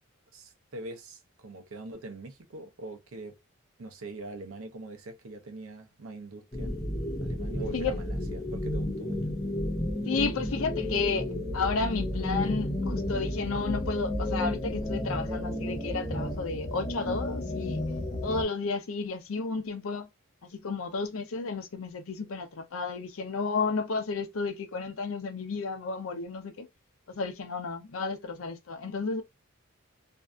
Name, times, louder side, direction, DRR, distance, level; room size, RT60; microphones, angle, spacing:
voice 1, 0.3-3.4 3.8-6.7 7.2-9.2, right 2 dB, 85° right, 0.6 m, -43 dB
sound 1, 6.5-18.4, left 1 dB, 15° left, 0.6 m, -32 dB
voice 2, 7.6-8.0 10.1-17.8 18.2-20.1 20.4-26.7 27.1-29.2, left 4 dB, 80° left, 0.5 m, -32 dB
2.6 x 2.4 x 2.2 m
head